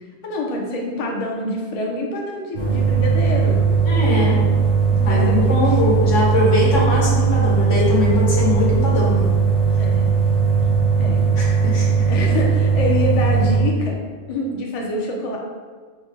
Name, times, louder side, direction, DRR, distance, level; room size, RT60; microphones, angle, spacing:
voice 1, 0.2-3.6 5.0-5.6 9.8-10.0 11.0-11.2 12.1-14.0 14.3-15.4, left 1 dB, 40° left, 0 dB, 0.5 m, -26 dB
sound 1, 2.5-13.6, right 5 dB, 85° right, 1.5 m, -18 dB
voice 2, 3.8-4.4 5.0-9.3 11.4-12.1, left 3 dB, 80° left, -5 dB, 1.5 m, -21 dB
4.3 x 2.2 x 4.7 m, 1.5 s
omnidirectional pair, 1.2 m